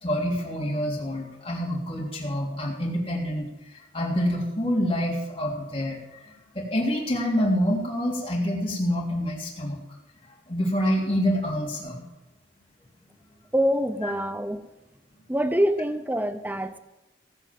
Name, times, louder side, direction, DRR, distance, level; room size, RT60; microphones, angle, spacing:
voice 1, 0.0-3.5 3.9-6.0 6.2-9.8 10.5-12.0 14.0-14.1, equal, 30° left, -4 dB, 3.3 m, -27 dB
voice 2, 13.5-14.7 15.3-16.8, equal, 10° right, 11 dB, 0.8 m, -25 dB
17.5 x 8.9 x 7.7 m, 0.97 s
head